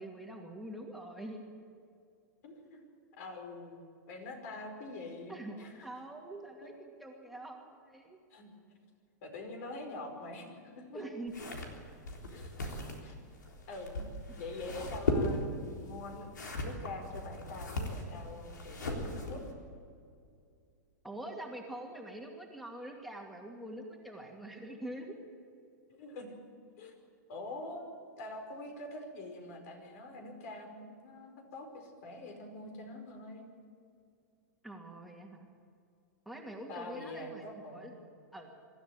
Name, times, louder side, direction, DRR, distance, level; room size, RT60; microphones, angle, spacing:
voice 1, 0.0-1.4 5.3-6.7 7.0-8.2 10.9-11.3 21.0-25.2 34.6-35.5 36.3-37.5 37.7-38.0 38.3-38.5, right 1 dB, ahead, 1 dB, 2.4 m, -44 dB
voice 2, 2.4-2.9 3.2-5.9 6.6-6.7 8.3-8.6 9.2-10.5 10.7-11.0 12.3-13.2 13.7-14.0 14.4-16.3 16.6-19.4 25.9-26.4 26.8-26.9 27.3-33.4 36.7-37.9, left 2 dB, 60° left, 4 dB, 5.0 m, -45 dB
sound 1, 11.3-19.5, left 2 dB, 90° left, 3.7 m, -38 dB
24.5 x 13.0 x 9.0 m, 2.4 s
hypercardioid pair, 120°, 10 cm